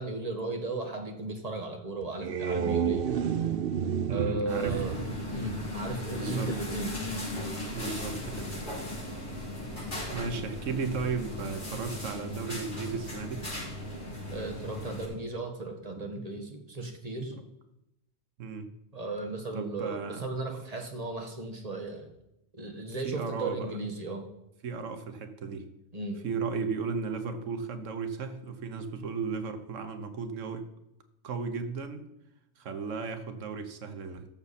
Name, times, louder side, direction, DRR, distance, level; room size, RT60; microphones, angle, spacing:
voice 1, 0.0-3.2 4.1-5.0 5.3-7.2 14.3-17.4 18.9-22.1 22.6-24.3 25.9-26.2, right 3 dB, 30° right, 3 dB, 1.5 m, -35 dB
sound 1, 2.0-6.2, right 8 dB, 55° right, 0.8 m, -31 dB
voice 2, 4.1-4.8 6.1-6.5 7.7-8.5 10.1-13.5 18.4-18.7 19.5-20.2 23.0-23.7 24.6-25.7 26.2-30.6 31.2-32.0 32.6-34.3, right 5 dB, 85° right, 8 dB, 1.3 m, -35 dB
sound 2, 4.5-15.1, left 1 dB, 40° left, 4.9 m, -37 dB
14.5 x 7.1 x 4.2 m, 0.85 s
omnidirectional pair, 1.3 m